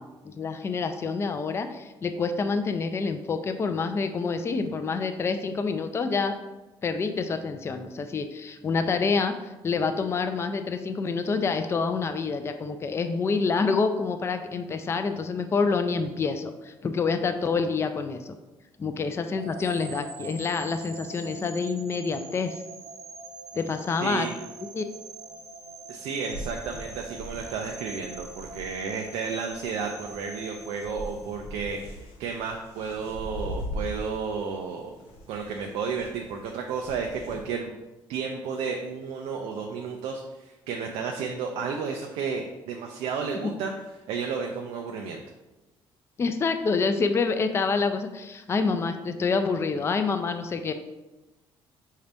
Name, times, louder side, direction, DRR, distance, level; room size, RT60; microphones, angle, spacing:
voice 1, 0.0-6.4 6.8-18.3 18.8-22.6 23.5-24.3 24.7-24.8 43.4-43.5 46.2-50.7, left 4 dB, 25° left, 8 dB, 0.3 m, -27 dB
sound 1, 19.4-31.5, right 3 dB, 40° right, 0.6 m, -44 dB
voice 2, 24.0-24.3 25.9-34.9 35.3-37.7 38.1-43.7 44.1-45.2, right 5 dB, 90° right, 2 dB, 0.4 m, -32 dB
sound 2, 26.3-37.5, equal, 90° left, 0.8 m, -41 dB
4.9 x 2.7 x 3.4 m, 1.1 s
cardioid pair, 105°, 10 cm